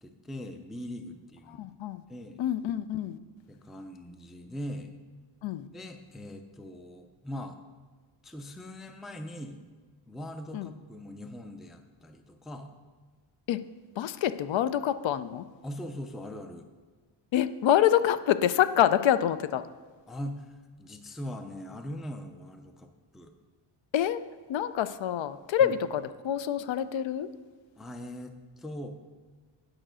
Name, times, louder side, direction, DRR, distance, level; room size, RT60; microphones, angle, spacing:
voice 1, 0.0-1.7 2.1-2.4 3.5-4.9 5.7-7.6 8.2-9.6 10.1-12.7 15.6-16.7 20.1-23.3 25.6-25.8 27.8-29.0, left 1 dB, ahead, 7 dB, 0.3 m, -41 dB
voice 2, 1.5-2.0 2.4-3.2 5.4-5.7 10.5-10.7 13.5-13.6 14.0-15.5 17.3-19.7 23.9-24.2 24.5-27.3, left 10 dB, 70° left, 13 dB, 0.5 m, -26 dB
9.0 x 5.0 x 6.1 m, 1.4 s
wide cardioid pair, 150°, 47 cm